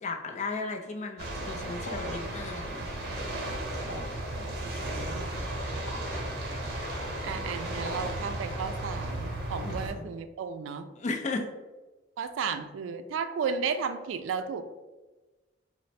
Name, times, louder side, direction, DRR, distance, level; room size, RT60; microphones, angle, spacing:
voice 1, 0.0-2.9 3.8-4.1 9.6-10.1 11.0-11.4, left 3 dB, 40° left, 3 dB, 0.4 m, -35 dB
sound 1, 1.2-9.9, right 1 dB, 60° right, 0.7 m, -34 dB
sound 2, 1.8-2.2 3.9-4.2 5.9-6.1 7.8-8.2, left 1 dB, 80° left, 0.9 m, -43 dB
voice 2, 4.6-5.5 7.2-10.9 12.2-14.6, right 6 dB, 90° right, 10 dB, 0.3 m, -34 dB
3.1 x 2.0 x 4.1 m, 1.2 s
head